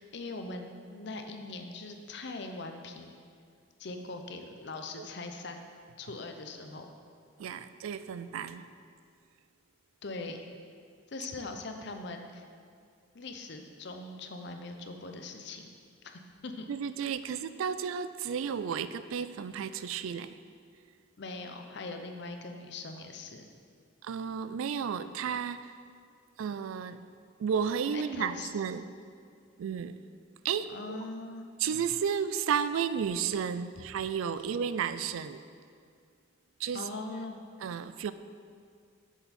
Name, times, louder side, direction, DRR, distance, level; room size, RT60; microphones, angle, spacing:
voice 1, 0.0-3.1 3.8-5.7 6.0-6.9 10.0-10.4 11.1-12.4 13.1-15.7 16.0-16.7 21.2-23.5 27.9-28.5 30.7-31.4 36.7-37.4, left 3 dB, 55° left, 5 dB, 0.6 m, -41 dB
voice 2, 7.4-8.7 16.7-20.4 24.0-25.8 26.4-27.0 27.4-28.8 29.6-30.0 30.4-31.0 31.6-35.5 36.6-36.9 37.6-38.1, right 7 dB, 80° right, 13 dB, 0.3 m, -33 dB
7.1 x 7.0 x 4.2 m, 2.2 s
head